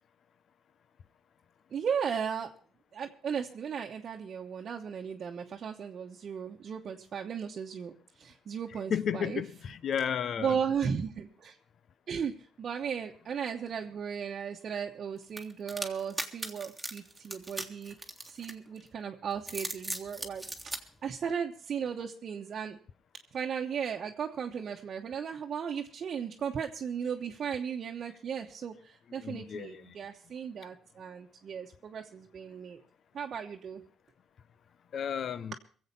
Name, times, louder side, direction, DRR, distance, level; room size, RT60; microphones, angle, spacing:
voice 1, 1.7-2.5 2.9-9.4 10.4-11.5 12.1-12.3 12.6-18.0 18.2-20.7 21.0-22.8 23.3-32.8 33.1-33.8, right 7 dB, 55° right, 1.1 m, -36 dB
voice 2, 8.9-10.6 29.2-29.9 34.9-35.5, left 8 dB, 60° left, 0.7 m, -33 dB
sound 1, 15.4-18.8 19.3-20.8, right 2 dB, 10° right, 1.8 m, -38 dB
22.5 x 7.9 x 5.4 m
cardioid pair, 90°, 0 cm